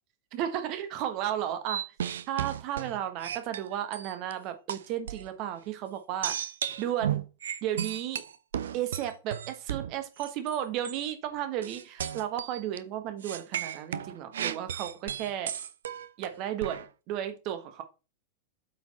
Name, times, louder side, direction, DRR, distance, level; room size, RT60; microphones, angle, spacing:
voice 1, 0.3-1.8 2.3-6.4 6.8-7.2 7.6-8.2 8.7-15.5 16.2-17.8, right 11 dB, 40° right, 1.2 m, -34 dB
sound 1, 1.6-4.3 4.7-5.3 6.2-10.6 10.8-11.1 11.6-12.8 13.2-16.9, right 9 dB, 65° right, 0.5 m, -34 dB
8.1 x 4.5 x 4.2 m
figure-of-eight pair, 90°, 0 cm